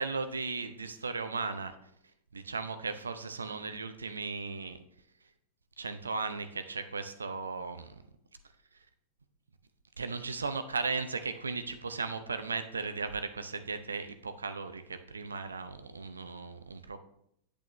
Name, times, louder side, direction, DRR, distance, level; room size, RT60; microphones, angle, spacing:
voice 1, 0.0-1.9 2.3-4.8 5.8-8.0 10.0-17.0, right 4 dB, 75° right, 10 dB, 0.6 m, -36 dB
8.3 x 8.2 x 3.0 m, 0.73 s
figure-of-eight pair, 90°, 0 cm